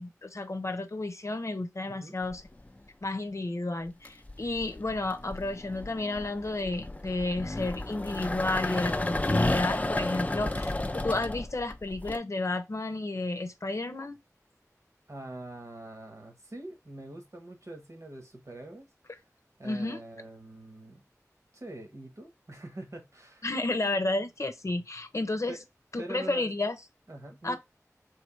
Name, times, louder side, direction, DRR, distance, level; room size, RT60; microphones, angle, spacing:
voice 1, 0.0-2.4 3.0-14.2 19.6-20.0 23.4-25.6 25.9-26.8 27.4-27.6, left 2 dB, 55° left, 0.7 m, -32 dB
voice 2, 1.9-2.2 10.2-10.5 15.1-18.9 19.6-21.0 21.5-23.5 25.5-25.6 26.0-26.5 27.1-27.6, right 1 dB, 60° right, 1.3 m, -44 dB
sound 1, 2.3-2.8 3.9-12.2, left 2 dB, 25° left, 0.4 m, -32 dB
3.5 x 3.2 x 4.6 m
wide cardioid pair, 55°, 6 cm